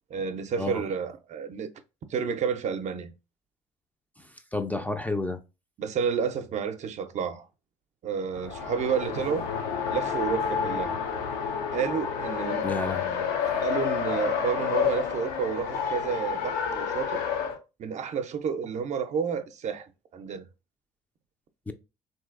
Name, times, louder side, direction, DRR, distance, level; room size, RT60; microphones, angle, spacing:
voice 1, 0.1-1.7 2.1-3.1 5.8-7.5 8.0-9.5 9.9-11.0 11.7-12.7 13.6-17.3 17.8-20.4, right 6 dB, 50° right, 0.5 m, -30 dB
voice 2, 4.5-5.4 12.6-13.3 21.7-21.8, left 2 dB, 10° left, 0.4 m, -30 dB
Race car auto racing, 8.3-17.6, left 7 dB, 75° left, 0.6 m, -29 dB
3.0 x 2.7 x 2.4 m
hypercardioid pair, 65°, 16 cm